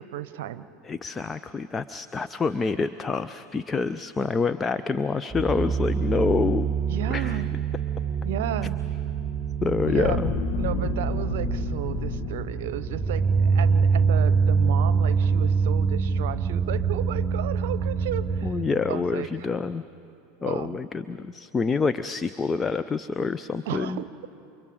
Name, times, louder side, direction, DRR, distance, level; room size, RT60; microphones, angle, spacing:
voice 1, 0.0-0.6 6.9-7.5 8.2-8.8 9.8-10.2 10.6-18.6 18.9-19.5 20.4-20.8 23.7-24.3, right 12 dB, 65° right, 15 dB, 0.8 m, -33 dB
voice 2, 0.8-6.7 7.1-7.4 9.6-10.3 18.4-19.8 20.4-24.0, left 4 dB, 20° left, 13 dB, 0.5 m, -27 dB
sound 1, 5.3-18.5, right 5 dB, 10° right, 2.8 m, -25 dB
sound 2, 9.8-14.3 14.8-14.9, left 6 dB, 55° left, 1.3 m, -33 dB
29.0 x 25.0 x 5.0 m, 2.9 s
figure-of-eight pair, 80°, 0 cm